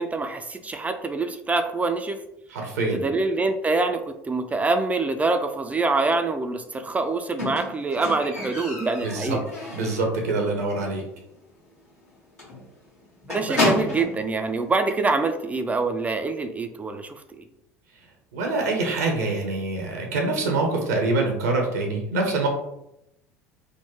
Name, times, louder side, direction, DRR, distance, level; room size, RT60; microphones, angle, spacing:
voice 1, 0.0-2.2 2.9-9.4 13.3-17.4, right 3 dB, 15° right, 7 dB, 0.3 m, -25 dB
voice 2, 2.5-3.0 9.0-9.4 9.7-11.0 18.3-22.5, right 3 dB, 75° right, 2 dB, 0.6 m, -25 dB
Squeak, 7.4-10.2 10.5-10.9 11.2-11.3 11.6-11.7 12.0-12.1 12.4-14.2 15.1-15.2, left 1 dB, 80° left, 1.4 m, -30 dB
3.6 x 2.1 x 2.9 m, 0.84 s
figure-of-eight pair, 65°, 8 cm